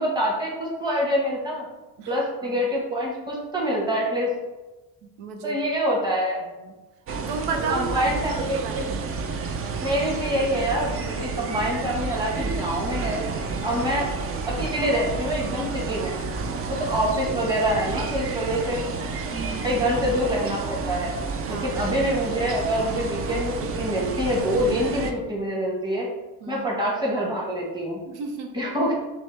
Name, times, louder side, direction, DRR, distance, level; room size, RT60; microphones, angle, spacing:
voice 1, 0.0-1.6 2.1-4.3 5.4-6.4 7.7-8.8 9.8-13.2 13.6-14.1 14.5-16.2 16.7-18.8 19.6-21.1 21.5-26.1 26.5-28.0 28.5-28.9, equal, 10° right, -3 dB, 1.3 m, -26 dB
voice 2, 5.2-5.6 6.6-6.7 7.3-8.0 8.3-9.2 13.5-13.8 19.3-19.8 21.5-21.7 26.4-26.7 28.1-28.5, right 5 dB, 90° right, 5 dB, 0.8 m, -33 dB
sound 1, 7.1-25.1, right 4 dB, 35° right, 0.4 m, -30 dB
6.2 x 2.2 x 3.3 m, 1.1 s
cardioid pair, 95°, 43 cm